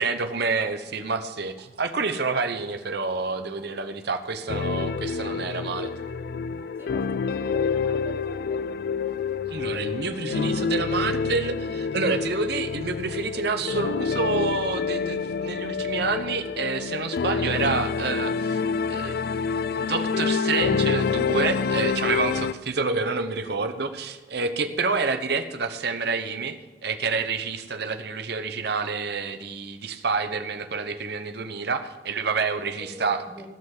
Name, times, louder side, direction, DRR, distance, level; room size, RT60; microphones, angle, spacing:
voice 1, 0.0-5.9 9.5-18.6 18.9-19.2 19.8-33.2, right 4 dB, 65° right, 8 dB, 1.0 m, -28 dB
sound 1, 1.1-1.2 1.6-1.7 2.1-2.2 2.6-2.8 3.1-3.2 3.6-3.7 4.1-4.2 4.6-4.7 5.1-5.2 5.6-5.7 6.1-6.3 6.6-6.7 7.1-7.2 7.6-7.7 8.1-8.2 8.6-8.7 9.1-9.2 9.6-9.7 10.1-10.2 10.6-10.7 11.1-11.2 11.6-11.7 12.1-12.2 12.6-12.8 13.1-13.2 13.6-13.7 14.1-14.2 14.6-14.7, right 3 dB, 35° right, 2.4 m, -54 dB
sound 2, 4.5-22.5, left 5 dB, 60° left, 0.4 m, -27 dB
voice 2, 6.8-8.7 32.7-33.6, equal, 15° right, 3 dB, 1.7 m, -44 dB
16.5 x 5.8 x 7.4 m, 1.3 s
head